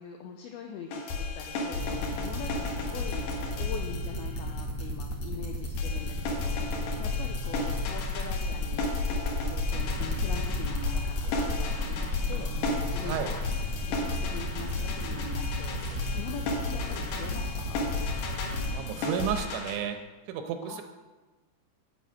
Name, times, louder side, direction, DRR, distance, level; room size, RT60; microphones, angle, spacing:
voice 1, 0.0-3.3 3.6-12.5 12.9-13.5 13.8-15.8 16.1-17.8 20.6-20.8, left 7 dB, 90° left, 3 dB, 2.2 m, -43 dB
sound 1, 0.9-4.6 5.8-19.8, left 3 dB, 70° left, 3.3 m, -34 dB
sound 2, 1.8-18.7, left 2 dB, 50° left, 2.0 m, -32 dB
sound 3, 9.7-19.3, right 1 dB, 60° right, 1.2 m, -44 dB
voice 2, 18.7-20.0 20.3-20.8, right 9 dB, 85° right, 7 dB, 3.1 m, -32 dB
8.5 x 7.9 x 5.8 m, 1.2 s
omnidirectional pair, 5.2 m